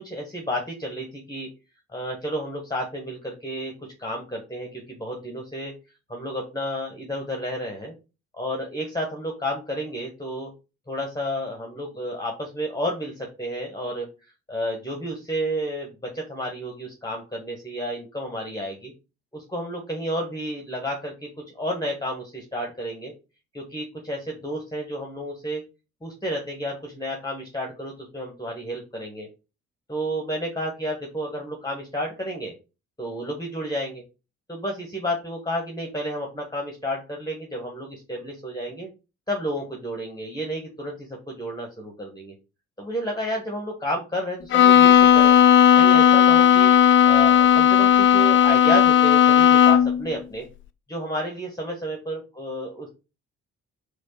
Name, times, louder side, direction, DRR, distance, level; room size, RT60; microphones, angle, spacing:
voice 1, 0.0-1.5 1.9-3.7 4.0-5.7 6.1-7.9 8.3-10.5 10.9-14.1 14.5-18.9 19.3-21.3 21.5-23.1 23.5-25.6 26.0-29.3 29.9-32.5 33.0-34.0 34.5-38.9 39.3-42.3 42.8-45.4 45.8-46.7 47.0-50.5 50.9-52.9, equal, 10° left, 1 dB, 1.2 m, -31 dB
Bowed string instrument, 44.5-50.0, left 9 dB, 35° left, 0.4 m, -15 dB
4.4 x 2.3 x 4.4 m, 0.29 s
figure-of-eight pair, 45°, 39 cm